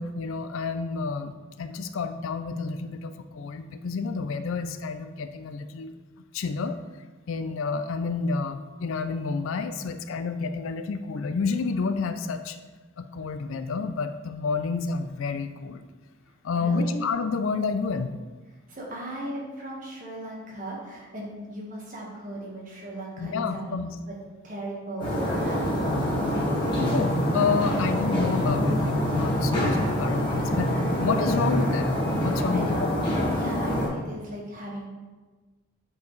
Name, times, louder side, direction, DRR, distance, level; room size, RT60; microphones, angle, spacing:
voice 1, 0.0-5.9 6.3-6.8 7.3-12.6 13.0-15.8 16.4-18.1 23.2-24.0 26.8-32.9, left 4 dB, 65° left, 9 dB, 0.4 m, -29 dB
voice 2, 16.5-17.0 18.7-24.2 24.4-26.4 32.5-32.8 33.3-34.9, right 1 dB, 35° right, -3 dB, 1.4 m, -37 dB
sound 1, 25.0-33.9, equal, 20° left, 1.6 m, -25 dB
8.2 x 4.6 x 3.2 m, 1.3 s
head